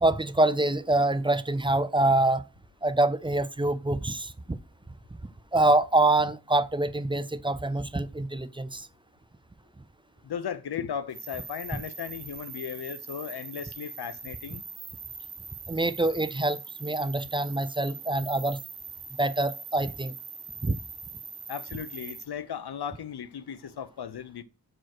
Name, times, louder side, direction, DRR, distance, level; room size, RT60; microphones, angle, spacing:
voice 1, 0.0-2.4 2.8-4.6 5.5-8.9 11.7-11.8 15.7-18.6 19.2-20.1 20.6-20.8, right 2 dB, 15° right, 0.4 m, -25 dB
voice 2, 10.2-14.6 21.5-24.4, left 8 dB, 70° left, 0.7 m, -36 dB
sound 1, 11.1-22.2, right 6 dB, 70° right, 1.3 m, -42 dB
6.2 x 4.8 x 5.9 m
wide cardioid pair, 90°, 40 cm